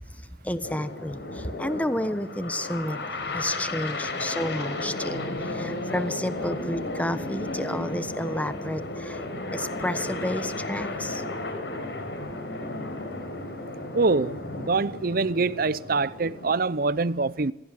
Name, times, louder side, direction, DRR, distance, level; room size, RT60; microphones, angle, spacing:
voice 1, 0.4-3.0 3.3-5.2 5.5-11.2, left 1 dB, 10° left, 1.1 m, -31 dB
sound 1, 0.6-16.6, left 2 dB, 85° left, 4.6 m, -34 dB
voice 2, 13.9-17.5, right 3 dB, 55° right, 0.7 m, -25 dB
27.0 x 17.0 x 7.7 m
head